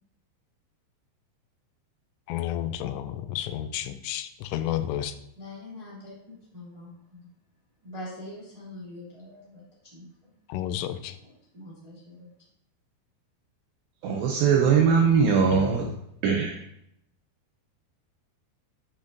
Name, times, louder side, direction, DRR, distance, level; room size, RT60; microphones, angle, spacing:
voice 1, 2.3-5.1 10.5-11.2 15.5-15.9, left 12 dB, 90° left, 12 dB, 3.1 m, -31 dB
voice 2, 5.3-7.3 7.8-10.1 11.2-12.3 14.6-15.3, left 1 dB, 30° right, -7 dB, 0.7 m, -44 dB
voice 3, 14.0-15.9 16.2-16.6, right 6 dB, 85° right, 1 dB, 2.4 m, -21 dB
10.0 x 5.3 x 2.6 m, 0.76 s
omnidirectional pair, 5.6 m